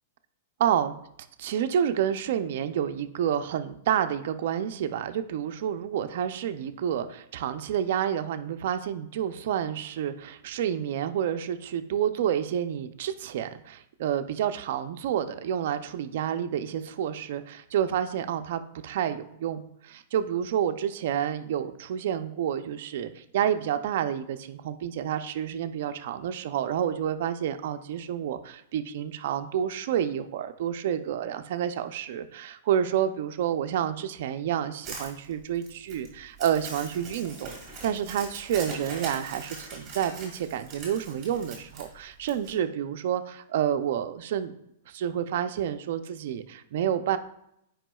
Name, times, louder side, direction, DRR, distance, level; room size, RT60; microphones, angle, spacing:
voice 1, 0.6-0.9 1.4-37.5 37.8-44.5 44.9-47.2, right 9 dB, 50° right, 9 dB, 0.4 m, -29 dB
Crumpling crinkling, 34.8-42.5, right 3 dB, 10° right, 1.9 m, -41 dB
8.9 x 4.8 x 2.3 m, 0.77 s
supercardioid pair, 170°, 0 cm